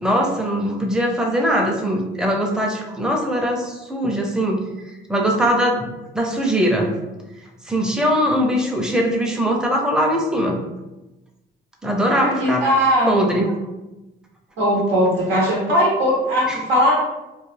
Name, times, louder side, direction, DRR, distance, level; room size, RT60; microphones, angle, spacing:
voice 1, 0.0-4.6 5.1-5.9 6.1-7.0 7.7-10.6 11.8-12.6 13.1-13.5 16.5-16.6, equal, 5° right, 1 dB, 0.5 m, -21 dB
voice 2, 12.4-13.1 14.6-16.9, equal, 90° right, -5 dB, 0.8 m, -18 dB
2.3 x 2.3 x 3.2 m, 1.0 s
cardioid pair, 90°, 20 cm